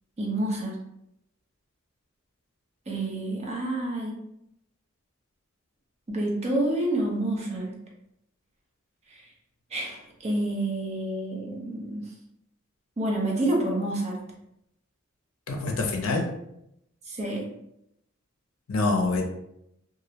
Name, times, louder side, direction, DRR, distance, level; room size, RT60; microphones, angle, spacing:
voice 1, 0.2-0.7 2.9-4.1 6.1-7.7 9.7-12.0 13.0-14.1 17.1-17.5, right 1 dB, 30° right, -1 dB, 0.5 m, -28 dB
voice 2, 15.5-16.3 18.7-19.3, left 3 dB, 75° left, 2 dB, 0.5 m, -25 dB
2.4 x 2.0 x 2.8 m, 0.80 s
head